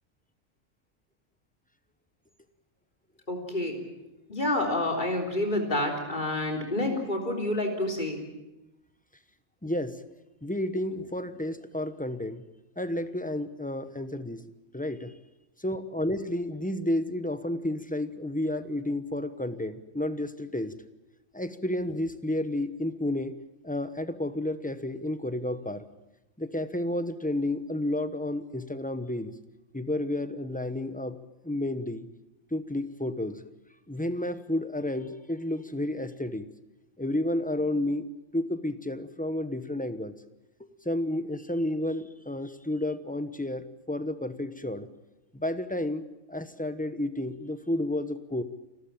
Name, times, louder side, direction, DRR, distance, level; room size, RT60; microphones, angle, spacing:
voice 1, 3.3-3.8 4.3-8.2, left 1 dB, 35° left, 2 dB, 4.0 m, -28 dB
voice 2, 9.6-10.0 10.4-12.4 12.8-14.5 14.7-15.1 15.6-20.7 21.3-23.4 23.6-25.8 26.4-29.3 29.7-31.2 31.4-32.1 32.5-33.4 33.9-36.5 37.0-40.1 40.6-44.9 45.3-48.4, left 1 dB, 5° left, 11 dB, 0.9 m, -31 dB
29.0 x 13.5 x 8.8 m, 0.96 s
omnidirectional pair, 1.4 m